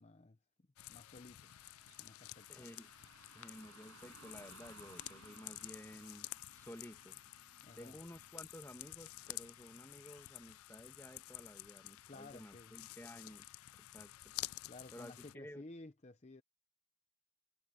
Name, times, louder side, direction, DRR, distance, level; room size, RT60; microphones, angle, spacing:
voice 1, 0.0-1.5 2.0-2.5 7.6-8.0 12.1-12.8 14.7-16.4, left 2 dB, 30° left, 0.7 m, -55 dB
sound 1, 0.8-15.3, left 17 dB, 75° left, 0.4 m, -51 dB
Car passing by / Traffic noise roadway noise, 1.4-10.4, right 4 dB, 70° right, 6.5 m, -63 dB
voice 2, 2.5-2.9 3.3-7.2 7.8-13.5 13.8-14.3 14.9-15.6, equal, 10° left, 1.8 m, -54 dB
head